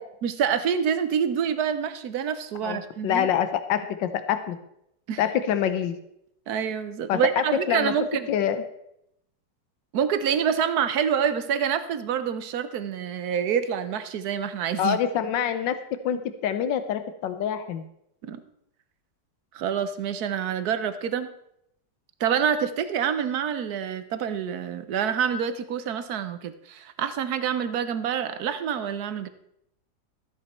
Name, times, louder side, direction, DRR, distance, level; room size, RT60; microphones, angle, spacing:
voice 1, 0.2-3.3 5.1-5.2 6.5-8.3 9.9-15.0 18.3-18.4 19.5-21.3 22.2-29.3, right 8 dB, 65° right, 11 dB, 1.3 m, -27 dB
voice 2, 2.6-4.6 5.2-5.9 7.1-7.9 8.3-8.6 14.8-15.8 16.0-17.8, left 9 dB, 90° left, 10 dB, 1.5 m, -26 dB
13.5 x 8.6 x 4.3 m, 0.77 s
omnidirectional pair, 1.9 m